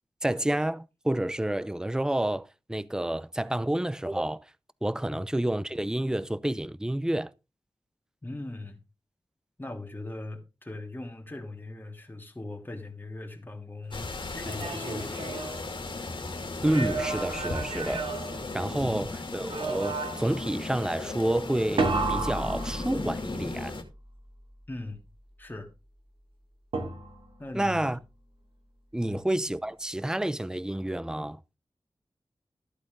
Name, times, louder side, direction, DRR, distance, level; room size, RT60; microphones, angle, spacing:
voice 1, 0.2-4.4 4.8-7.3 16.6-18.1 18.5-23.7 27.5-28.0 28.9-31.4, right 1 dB, 5° right, 0.6 m, -29 dB
voice 2, 8.2-8.8 9.6-15.5 18.7-19.1 24.7-25.0 25.4-25.7 27.4-28.0 29.0-29.2, left 2 dB, 20° left, 3.3 m, -40 dB
sound 1, 13.9-23.8, left 3 dB, 65° left, 2.6 m, -36 dB
sound 2, 14.3-16.2 16.6-19.0 19.5-20.4 21.8-23.4 26.7-27.4, right 3 dB, 75° right, 3.2 m, -32 dB
14.0 x 8.3 x 3.8 m
wide cardioid pair, 65°, 9 cm